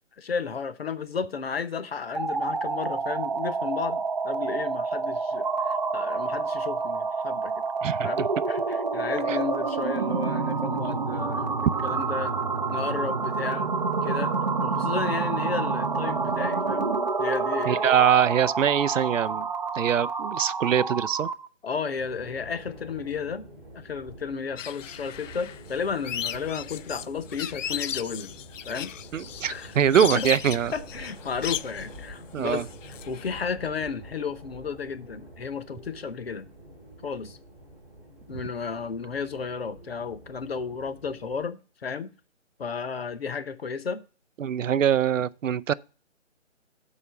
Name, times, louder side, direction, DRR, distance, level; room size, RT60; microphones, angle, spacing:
voice 1, 0.2-7.5 8.0-11.5 11.8-12.3 12.7-13.7 14.0-14.3 14.6-16.9 17.2-17.8 21.6-23.4 23.7-28.3 28.7-28.9 29.5-29.8 30.1-30.3 30.7-36.5 37.0-37.4 38.3-42.1 42.6-44.0, left 5 dB, 55° left, 0.9 m, -33 dB
sound 1, 2.0-21.5, right 4 dB, 35° right, 0.6 m, -28 dB
voice 2, 7.8-8.3 9.3-9.4 17.7-19.5 19.8-21.3 29.1-30.7 32.3-32.6 44.4-45.7, right 9 dB, 90° right, 0.6 m, -23 dB
sound 2, 22.0-41.5, right 1 dB, ahead, 0.7 m, -47 dB
sound 3, 24.6-33.3, left 9 dB, 85° left, 0.5 m, -36 dB
7.1 x 4.9 x 6.8 m
hypercardioid pair, 165°, 37 cm